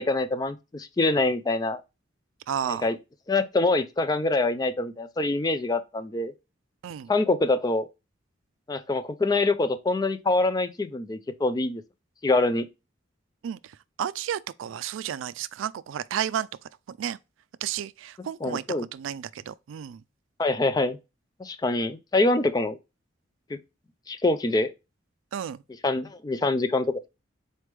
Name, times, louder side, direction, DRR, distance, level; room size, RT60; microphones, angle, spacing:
voice 1, 0.0-1.8 2.7-3.0 3.3-6.3 7.1-7.9 8.7-11.8 12.2-12.7 18.4-18.9 20.4-21.0 21.4-22.8 23.5-23.6 24.1-24.7 25.8-27.1, left 2 dB, 20° left, 0.3 m, -25 dB
voice 2, 2.5-2.9 6.8-7.1 13.4-13.7 14.0-16.5 16.9-17.2 17.6-18.6 18.9-20.0 25.3-25.6, right 9 dB, 80° right, 0.3 m, -32 dB
4.1 x 3.4 x 3.1 m
head